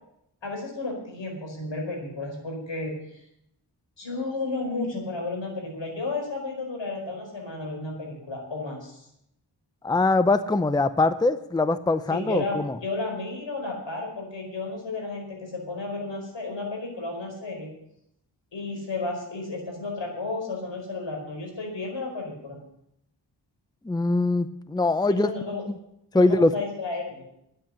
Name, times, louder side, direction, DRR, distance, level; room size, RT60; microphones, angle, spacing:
voice 1, 0.4-3.2 4.0-9.1 12.1-17.7 18.5-22.6 25.1-25.6 26.1-27.2, left 3 dB, 80° left, 1 dB, 4.9 m, -33 dB
voice 2, 9.8-12.8 23.9-25.3 26.1-26.5, left 2 dB, 10° left, 13 dB, 0.6 m, -22 dB
9.9 x 8.7 x 9.8 m, 0.79 s
wide cardioid pair, 65°, 44 cm